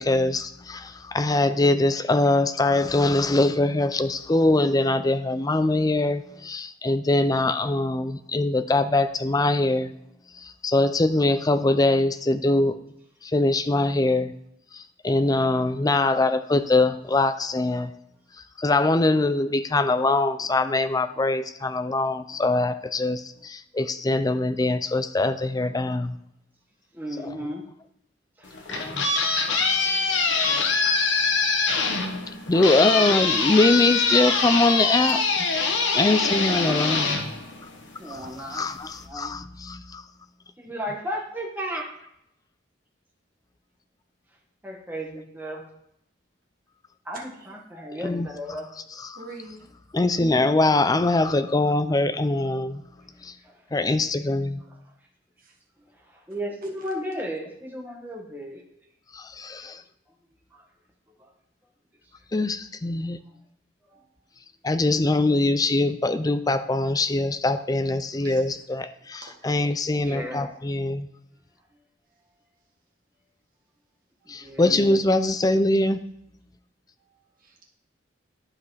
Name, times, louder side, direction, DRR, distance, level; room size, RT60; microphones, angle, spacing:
voice 1, 0.0-9.9 10.4-12.8 13.2-14.3 14.7-17.9 18.6-26.2 27.2-27.4 28.7-29.1 29.4-29.8 32.5-35.2 35.9-37.2 38.1-40.0 48.0-48.3 49.0-49.2 49.9-52.8 53.2-53.3 53.7-54.6 59.1-59.8 62.3-63.2 64.6-71.1 74.3-76.0, left 2 dB, 20° left, 0.4 m, -23 dB
voice 2, 26.9-27.6 28.4-28.6 30.8-31.0 36.6-37.0 38.0-38.7 39.0-39.3 40.6-41.9 44.6-45.6 47.0-48.7 53.4-53.5 56.1-58.6 59.5-59.7 60.5-60.6 63.9-64.0 69.9-70.4 74.2-74.7, equal, 10° right, 1.5 m, -35 dB
sound 1, 28.4-38.1, left 4 dB, 85° left, 1.2 m, -24 dB
voice 3, 49.1-49.6 55.4-55.5 68.2-68.4 69.2-69.5 77.4-77.6, right 3 dB, 50° right, 1.8 m, -43 dB
11.5 x 4.8 x 4.2 m
head